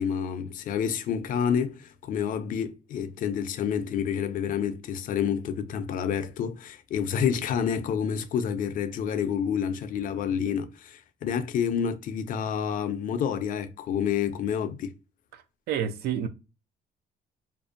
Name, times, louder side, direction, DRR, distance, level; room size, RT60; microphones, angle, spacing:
voice 1, 0.0-14.9, left 8 dB, 55° left, 0.4 m, -29 dB
voice 2, 15.3-16.3, right 9 dB, 70° right, 0.4 m, -30 dB
2.5 x 2.1 x 2.4 m
cardioid pair, 110°, 17 cm